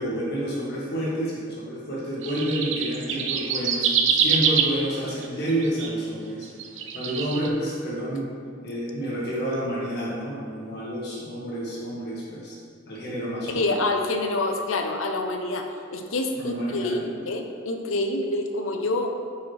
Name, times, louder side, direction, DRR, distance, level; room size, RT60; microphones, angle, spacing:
voice 1, 0.0-6.5 6.9-8.3 8.6-12.6 12.9-13.7 16.4-17.0, right 1 dB, 55° left, -6 dB, 1.7 m, -29 dB
sound 1, 2.2-5.9 6.4-7.5, right 7 dB, 70° right, 0.6 m, -24 dB
voice 2, 13.6-19.1, left 2 dB, 90° left, 4 dB, 0.7 m, -27 dB
8.8 x 5.6 x 3.2 m, 2.2 s
head